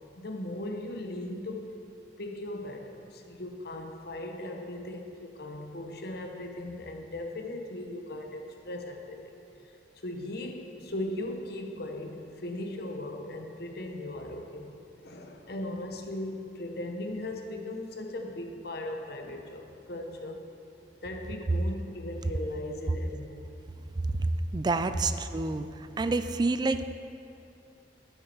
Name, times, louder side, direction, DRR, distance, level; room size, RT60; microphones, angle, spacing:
voice 1, 0.2-1.7 2.2-9.3 10.0-14.7 15.0-20.4 21.0-23.5, left 1 dB, 60° left, 3 dB, 1.0 m, -38 dB
voice 2, 24.2-25.7 26.0-26.8, right 3 dB, 25° right, 10 dB, 0.3 m, -28 dB
11.0 x 9.4 x 4.6 m, 2.7 s
head